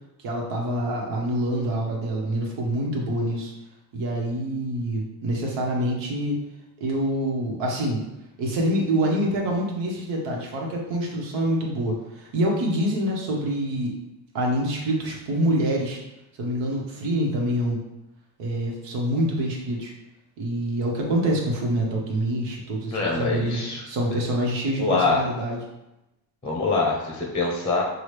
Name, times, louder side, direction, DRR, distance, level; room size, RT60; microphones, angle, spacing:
voice 1, 0.2-3.5 3.9-6.4 6.8-8.0 8.4-13.9 14.3-16.0 16.4-17.8 18.4-19.9 20.4-25.6, right 1 dB, 75° right, -1 dB, 1.3 m, -26 dB
voice 2, 22.9-23.8 24.1-24.2 24.8-25.2 26.4-27.8, left 3 dB, 10° left, -1 dB, 0.7 m, -24 dB
6.1 x 2.4 x 3.3 m, 0.95 s
cardioid pair, 130°, 45 cm